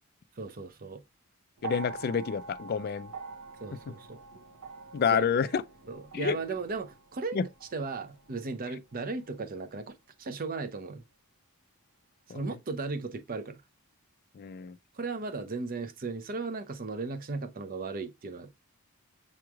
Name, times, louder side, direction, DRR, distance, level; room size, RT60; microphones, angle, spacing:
voice 1, 0.4-1.0 3.6-4.2 5.1-5.2 5.9-7.4 7.7-11.0 12.3-13.6 14.9-18.5, right 3 dB, 40° right, 0.5 m, -36 dB
voice 2, 1.6-3.1 3.9-4.0 4.9-5.6 6.1-6.4 7.3-7.5 12.3-12.4 14.3-14.8, left 6 dB, 45° left, 0.3 m, -28 dB
sound 1, 1.6-9.9 11.0-11.1, right 4 dB, 85° right, 0.7 m, -46 dB
7.0 x 3.1 x 2.2 m
head